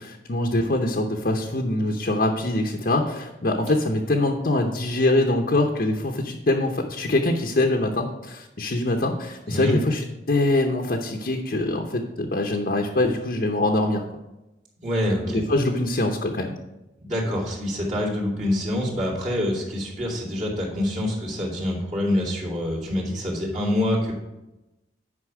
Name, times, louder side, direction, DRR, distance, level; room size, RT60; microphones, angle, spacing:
voice 1, 0.0-14.0 15.3-16.6, left 2 dB, 50° left, 2 dB, 0.7 m, -24 dB
voice 2, 14.8-15.4 17.0-24.1, left 1 dB, 40° right, -5 dB, 2.6 m, -26 dB
9.8 x 5.4 x 4.8 m, 0.97 s
head